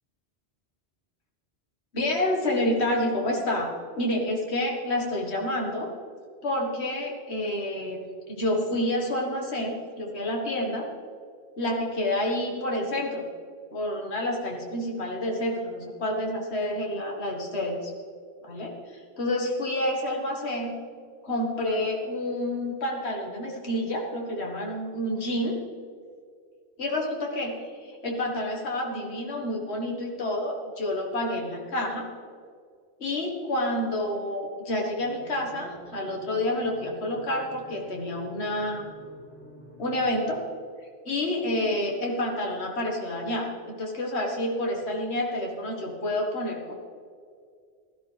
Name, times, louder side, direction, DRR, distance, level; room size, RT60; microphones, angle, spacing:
voice 1, 1.9-5.9 6.4-8.0 8.3-10.9 11.6-13.2 13.7-17.9 18.4-20.8 21.2-25.6 26.8-32.1 33.0-38.9 39.8-40.4 41.1-46.7, left 1 dB, 75° left, -1 dB, 2.0 m, -29 dB
sound 1, 35.0-40.3, right 1 dB, 10° left, 4.1 m, -48 dB
16.5 x 13.0 x 3.4 m, 2.1 s
omnidirectional pair, 1.1 m